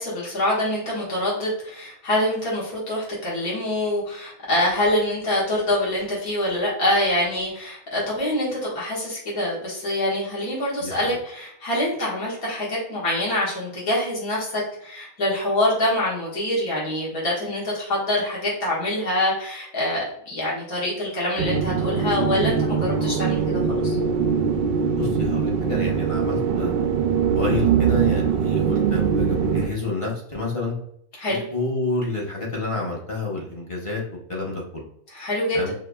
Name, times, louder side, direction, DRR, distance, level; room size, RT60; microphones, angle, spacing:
voice 1, 0.0-24.0 31.2-31.5 35.1-35.6, left 1 dB, 80° left, -6 dB, 2.0 m, -25 dB
sound 1, 21.4-29.7, right 6 dB, 70° right, 0.5 m, -22 dB
voice 2, 25.0-26.7 27.4-30.7 31.5-34.0 34.3-34.9 35.5-35.7, left 3 dB, 30° left, -3 dB, 0.7 m, -29 dB
4.9 x 3.0 x 2.3 m, 0.71 s
omnidirectional pair, 1.5 m